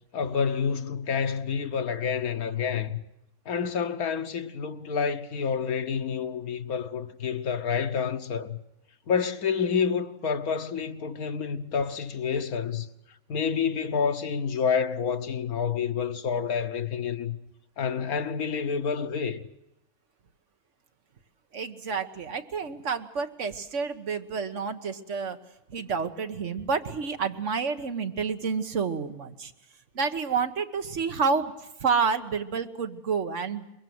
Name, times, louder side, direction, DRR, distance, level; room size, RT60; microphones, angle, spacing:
voice 1, 0.1-3.0 3.4-8.6 9.1-12.9 13.3-17.4 17.8-19.4, left 6 dB, 85° left, 1.6 m, -28 dB
voice 2, 21.5-25.4 25.7-29.5 29.9-33.7, right 5 dB, 60° right, 1.7 m, -29 dB
23.5 x 22.0 x 7.8 m
omnidirectional pair, 1.5 m